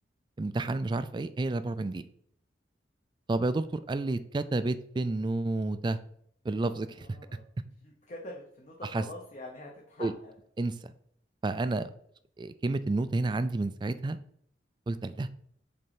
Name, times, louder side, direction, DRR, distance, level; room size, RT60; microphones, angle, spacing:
voice 1, 0.4-2.0 3.3-6.0 6.4-7.1 8.9-9.0 10.0-10.1 10.6-10.7 11.4-11.9 12.4-14.2 14.9-15.3, right 2 dB, 25° right, 12 dB, 0.3 m, -30 dB
voice 2, 6.9-7.4 7.8-10.3, left 2 dB, 40° left, -1 dB, 0.9 m, -45 dB
5.3 x 4.2 x 5.7 m, 0.67 s
head